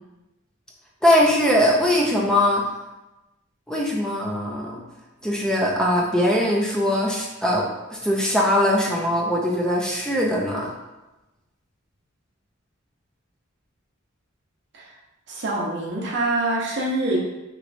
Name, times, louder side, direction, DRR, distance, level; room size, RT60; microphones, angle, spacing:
voice 1, 1.0-2.6 3.7-4.8 5.2-10.7, left 1 dB, 5° left, -3 dB, 0.4 m, -21 dB
voice 2, 15.3-17.2, right 2 dB, 60° right, -3 dB, 0.7 m, -25 dB
3.1 x 3.0 x 2.6 m, 1.0 s
head